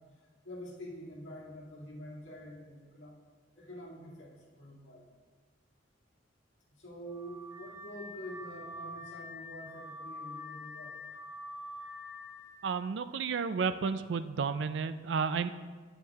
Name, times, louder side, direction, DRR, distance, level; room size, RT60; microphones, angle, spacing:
voice 1, 0.4-3.2 3.5-5.1 6.8-11.0, equal, 70° left, -4 dB, 2.1 m, -46 dB
Car / Alarm, 7.1-12.6, left 1 dB, 15° right, 0.8 m, -45 dB
voice 2, 12.6-15.5, right 5 dB, 65° right, 12 dB, 0.4 m, -32 dB
9.1 x 7.2 x 3.5 m, 1.5 s
head